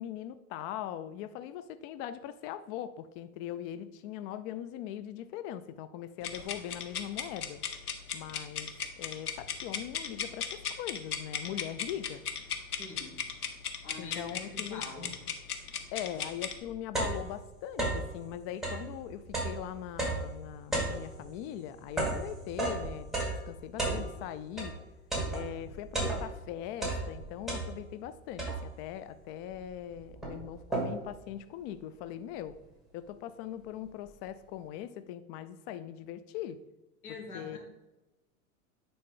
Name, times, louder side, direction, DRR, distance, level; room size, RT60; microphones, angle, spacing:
voice 1, 0.0-7.6 8.1-12.2 14.0-14.8 15.9-23.1 23.4-24.7 25.3-32.6 32.9-36.6 37.3-37.6, left 11 dB, 45° left, 12 dB, 0.4 m, -41 dB
sound 1, 6.2-16.6, left 7 dB, 90° left, 0.9 m, -37 dB
voice 2, 12.7-13.2 13.8-15.1 37.0-37.6, left 3 dB, 75° left, -1 dB, 2.4 m, -44 dB
sound 2, 16.5-18.2 18.5-24.8 25.1-26.5 26.8-28.0 28.4-28.9 29.5-29.6 29.9-31.2, right 2 dB, ahead, 2.5 m, -34 dB
9.4 x 4.0 x 3.8 m, 1.0 s
hypercardioid pair, 85°, 44 cm